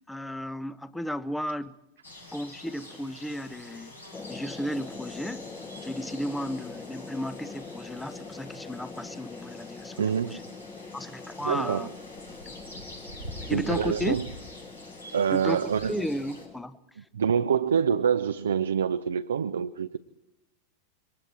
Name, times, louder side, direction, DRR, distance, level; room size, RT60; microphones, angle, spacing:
voice 1, 0.1-1.8 2.3-4.0 4.3-5.5 5.8-10.4 10.9-11.9 12.3-12.6 13.5-14.2 15.3-16.8, left 1 dB, 5° left, 17 dB, 0.9 m, -34 dB
sound 1, 2.0-16.5, left 1 dB, 85° left, 5.8 m, -45 dB
sound 2, 4.1-16.7, left 4 dB, 20° left, 1.4 m, -44 dB
voice 2, 10.0-10.4 11.4-11.9 13.4-14.3 15.1-16.1 17.1-20.0, right 7 dB, 70° right, 9 dB, 0.7 m, -26 dB
27.0 x 23.0 x 4.5 m, 0.95 s
figure-of-eight pair, 90°, 0 cm